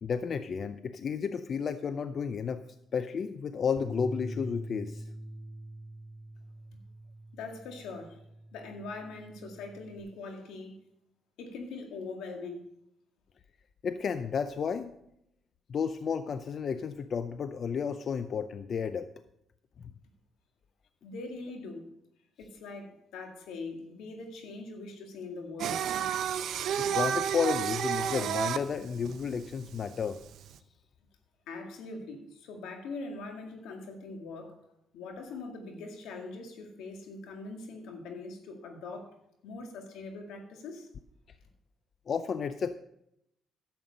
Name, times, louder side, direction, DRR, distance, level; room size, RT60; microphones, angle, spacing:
voice 1, 0.0-2.6 2.9-5.1 13.8-14.9 15.7-19.1 19.8-19.9 26.8-30.2 42.1-42.8, left 6 dB, 55° left, 11 dB, 0.5 m, -32 dB
Bass guitar, 3.8-10.0, equal, 45° right, 3.3 m, -44 dB
voice 2, 7.3-8.2 8.5-10.8 11.4-12.6 21.0-21.9 22.4-25.8 31.5-34.6 34.9-39.2 39.4-40.9, left 3 dB, 90° left, 4 dB, 1.9 m, -42 dB
Singing, 25.6-30.6, right 9 dB, 75° right, 0.7 m, -31 dB
11.5 x 7.7 x 5.2 m, 0.78 s
cardioid pair, 90°, 0 cm